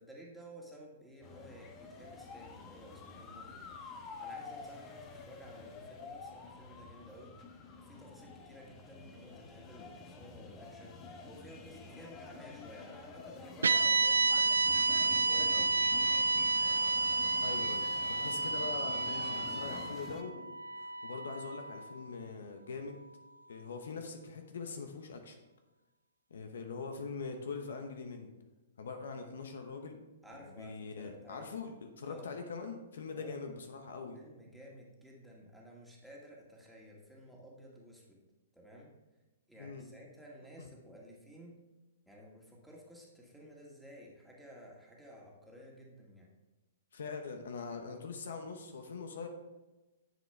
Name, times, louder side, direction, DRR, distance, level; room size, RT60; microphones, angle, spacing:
voice 1, 0.0-3.8 4.2-7.3 7.8-11.0 11.2-14.5 14.8-16.5 30.2-31.6 32.0-32.3 33.2-33.4 34.1-38.2 38.5-38.9 39.5-41.6 42.1-46.3, equal, ahead, -3 dB, 2.0 m, -54 dB
sound 1, 1.2-20.2, left 4 dB, 25° left, 1.1 m, -49 dB
sound 2, 13.6-21.9, right 3 dB, 80° right, 0.4 m, -30 dB
voice 2, 17.4-23.0 23.5-25.4 26.3-28.3 28.8-30.0 30.4-34.2 39.6-39.9 40.6-40.7 46.9-49.3, left 4 dB, 70° left, 5 dB, 1.1 m, -43 dB
10.5 x 7.0 x 3.5 m, 1.1 s
hypercardioid pair, 120°, 0 cm